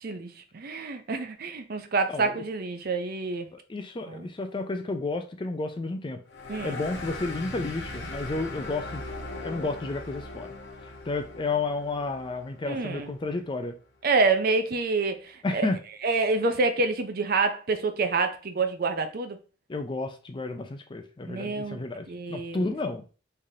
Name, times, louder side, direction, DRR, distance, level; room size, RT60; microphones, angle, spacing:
voice 1, 0.0-3.5 4.1-4.3 6.5-6.8 12.6-13.1 14.0-15.7 16.0-19.4 21.3-22.7, right 3 dB, 55° right, 0.5 m, -27 dB
voice 2, 3.5-6.2 6.6-9.0 9.4-10.5 11.1-13.8 15.4-15.8 19.7-23.0, left 3 dB, 25° left, 0.4 m, -31 dB
sound 1, 6.3-13.4, left 2 dB, 60° left, 0.7 m, -39 dB
3.7 x 3.3 x 2.7 m
head